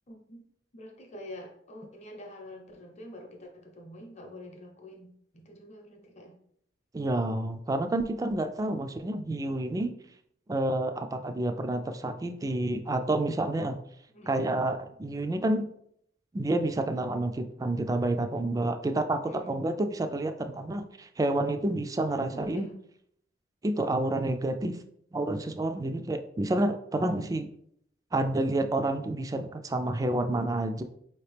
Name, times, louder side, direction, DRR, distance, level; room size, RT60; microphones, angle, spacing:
voice 1, 0.1-0.4 0.7-5.1 5.3-6.3 8.6-9.0 14.1-14.5 19.2-19.6 22.2-22.7, left 1 dB, 40° left, 2 dB, 0.8 m, -46 dB
voice 2, 6.9-9.9 10.5-13.8 14.3-15.7 16.3-22.7 23.6-24.8 25.1-27.5 28.1-30.8, right 2 dB, 20° right, 7 dB, 0.3 m, -29 dB
4.8 x 2.9 x 3.3 m, 0.69 s
head